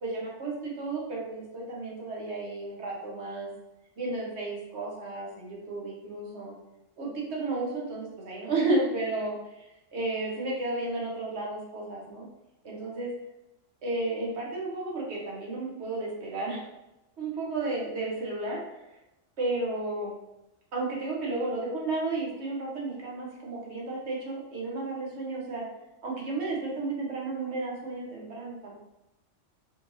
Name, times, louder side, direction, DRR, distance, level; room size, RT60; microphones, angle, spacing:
voice 1, 0.0-3.5 4.0-6.5 7.0-12.3 12.6-13.1 13.8-16.6 17.2-18.6 19.4-20.1 20.7-25.7 26.0-28.7, right 2 dB, 65° right, -3 dB, 1.3 m, -32 dB
4.2 x 3.1 x 2.6 m, 0.95 s
omnidirectional pair, 1.2 m